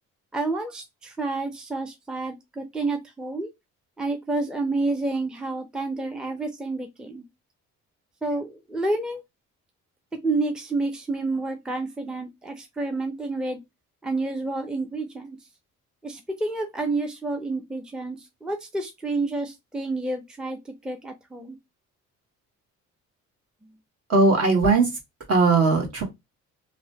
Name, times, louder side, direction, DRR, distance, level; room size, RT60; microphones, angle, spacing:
voice 1, 0.3-3.5 4.0-7.2 8.2-9.2 10.2-13.6 14.0-15.4 16.0-21.6, right 2 dB, 5° right, 0.5 m, -29 dB
voice 2, 24.1-24.9 25.3-26.0, right 3 dB, 55° right, 1.3 m, -19 dB
2.9 x 2.1 x 2.8 m
cardioid pair, 90°, 30 cm